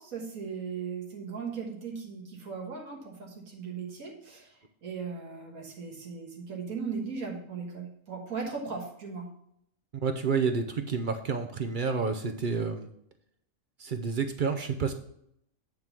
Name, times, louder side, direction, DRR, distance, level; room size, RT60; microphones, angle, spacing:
voice 1, 0.0-9.3, right 5 dB, 70° right, 0 dB, 1.9 m, -38 dB
voice 2, 9.9-12.9 13.8-14.9, right 5 dB, 55° right, 7 dB, 0.6 m, -29 dB
9.5 x 3.6 x 6.0 m, 0.73 s
omnidirectional pair, 1.5 m